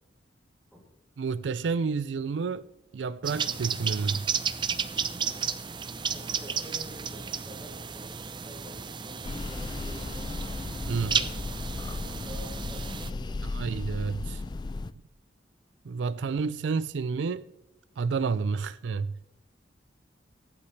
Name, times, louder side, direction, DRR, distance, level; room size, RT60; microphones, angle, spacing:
voice 1, 1.2-2.7 2.9-4.3 10.9-11.2 13.4-14.4 15.8-17.5 18.0-19.2, right 5 dB, 80° right, 0.4 m, -30 dB
sound 1, 3.2-13.1, right 6 dB, 25° right, 0.5 m, -33 dB
voice 2, 6.1-10.4 11.0-13.5, equal, 5° left, 2.7 m, -49 dB
sound 2, 9.2-14.9, left 3 dB, 25° left, 0.3 m, -35 dB
23.0 x 8.4 x 3.3 m
head